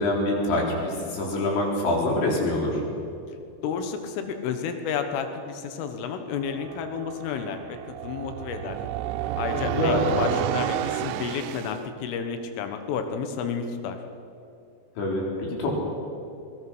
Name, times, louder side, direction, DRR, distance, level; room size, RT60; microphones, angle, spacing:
voice 1, 0.0-2.8 9.5-10.1 15.0-15.7, left 1 dB, 65° left, -1 dB, 6.2 m, -25 dB
voice 2, 3.6-7.8 8.0-8.8 9.4-14.0, left 6 dB, 90° left, 7 dB, 3.9 m, -31 dB
sound 1, 6.4-11.8, right 12 dB, 85° right, 3.2 m, -31 dB
23.0 x 22.0 x 6.3 m, 2.7 s
omnidirectional pair, 5.6 m